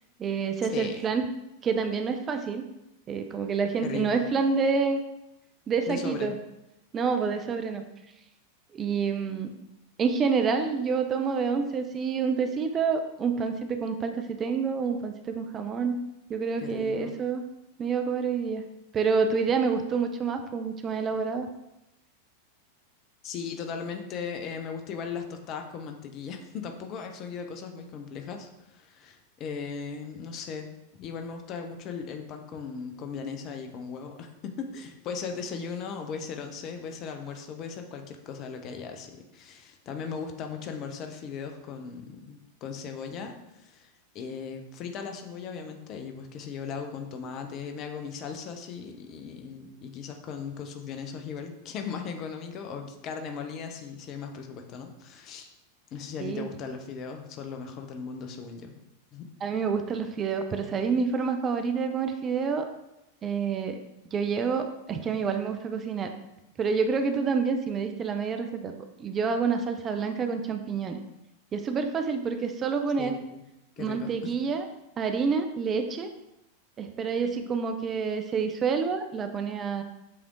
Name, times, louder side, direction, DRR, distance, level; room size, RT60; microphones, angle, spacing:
voice 1, 0.2-1.2 1.6-2.6 3.1-5.0 5.7-6.4 6.9-7.8 8.7-9.5 10.0-16.0 16.3-17.4 17.8-18.6 18.9-21.5 56.2-56.5 59.4-62.7 63.2-63.8 64.1-66.1 66.6-68.7 69.0-71.0 71.5-73.2 73.8-74.7 75.0-76.1 76.8-79.8, right 5 dB, 25° right, 6 dB, 0.5 m, -28 dB
voice 2, 3.8-4.2 5.9-6.3 16.6-17.1 23.2-30.7 31.0-43.9 44.1-55.5 55.9-58.7 59.1-59.3 73.0-73.4 73.8-74.4, left 6 dB, 35° left, 5 dB, 0.7 m, -38 dB
7.7 x 3.5 x 3.7 m, 0.90 s
figure-of-eight pair, 90°, 0 cm